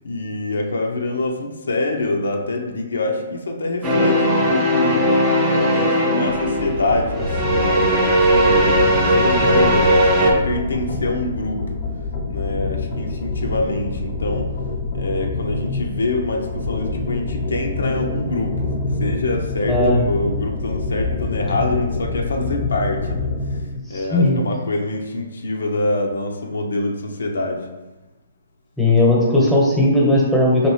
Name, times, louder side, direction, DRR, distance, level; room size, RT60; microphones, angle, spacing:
voice 1, 0.0-5.1 5.5-8.7 9.1-11.7 12.3-14.5 14.9-18.6 19.0-19.8 20.1-23.6 23.9-27.6, left 2 dB, 80° left, 2 dB, 0.6 m, -25 dB
sound 1, 3.8-10.3, equal, 25° right, 0.8 m, -18 dB
sound 2, 6.3-23.7, left 3 dB, 35° left, 0.7 m, -26 dB
voice 2, 19.7-20.0 23.9-24.4 28.8-30.7, left 1 dB, ahead, -4 dB, 1.0 m, -16 dB
4.2 x 3.0 x 3.1 m, 1.1 s
hypercardioid pair, 140°, 0 cm